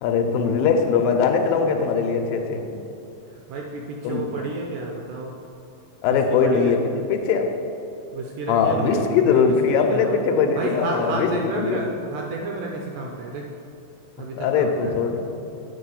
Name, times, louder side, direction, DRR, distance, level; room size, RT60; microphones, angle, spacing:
voice 1, 0.0-2.6 4.0-4.3 6.0-6.8 7.1-7.5 8.5-11.8 14.3-15.2, left 6 dB, 80° left, 4 dB, 2.3 m, -21 dB
voice 2, 3.5-5.3 6.1-6.8 8.1-10.2 10.6-13.5 14.2-15.0, right 3 dB, 80° right, 0 dB, 2.0 m, -31 dB
8.7 x 4.7 x 5.4 m, 2.7 s
omnidirectional pair, 4.3 m